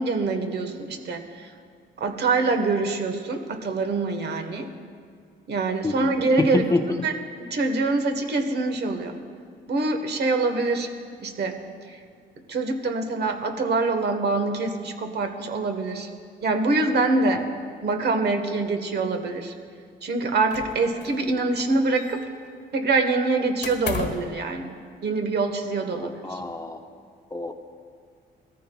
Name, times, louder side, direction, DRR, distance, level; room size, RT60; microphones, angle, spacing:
voice 1, 0.0-1.5 2.0-4.7 5.5-6.6 7.0-9.1 9.7-10.9 11.2-11.6 12.5-16.1 16.4-17.4 17.8-19.5 20.0-22.2 22.7-24.7 25.0-26.4, right 3 dB, 55° right, 6 dB, 1.3 m, -25 dB
voice 2, 6.4-6.8 17.3-17.4 25.9-26.8 27.3-27.5, left 3 dB, 15° left, 5 dB, 0.7 m, -26 dB
sound 1, 20.5-21.3 21.5-22.5 23.6-24.4, left 6 dB, 60° left, 1.3 m, -34 dB
18.0 x 14.0 x 2.3 m, 2.2 s
cardioid pair, 90°, 20 cm